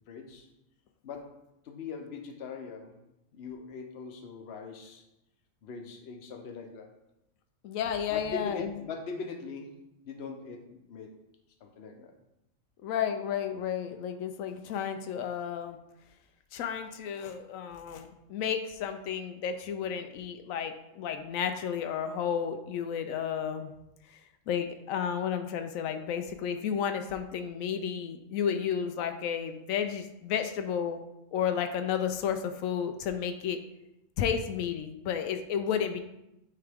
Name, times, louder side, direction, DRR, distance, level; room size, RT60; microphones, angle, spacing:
voice 1, 0.1-0.5 1.0-1.4 1.6-3.0 3.3-5.0 5.6-6.9 8.1-11.2 11.6-12.2, left 4 dB, 55° left, 4 dB, 1.0 m, -41 dB
voice 2, 7.6-8.7 12.8-15.8 16.5-23.7 24.5-31.0 31.3-33.6 34.2-36.0, left 8 dB, 90° left, 7 dB, 1.0 m, -32 dB
9.4 x 3.3 x 3.5 m, 0.90 s
omnidirectional pair, 1.4 m